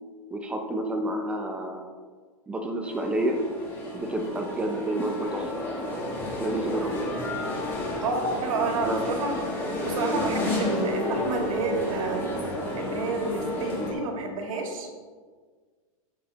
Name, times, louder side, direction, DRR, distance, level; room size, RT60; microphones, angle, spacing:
voice 1, 0.3-1.9 2.5-3.4 3.9-5.5 6.4-7.1 8.8-9.0, right 1 dB, 5° right, 4 dB, 0.5 m, -29 dB
sound 1, 2.8-13.9, left 1 dB, 10° left, 1.6 m, -31 dB
voice 2, 8.0-12.2 12.7-14.9, right 3 dB, 65° right, 2 dB, 1.9 m, -30 dB
13.5 x 6.0 x 2.9 m, 1.5 s
supercardioid pair, 165°, 18 cm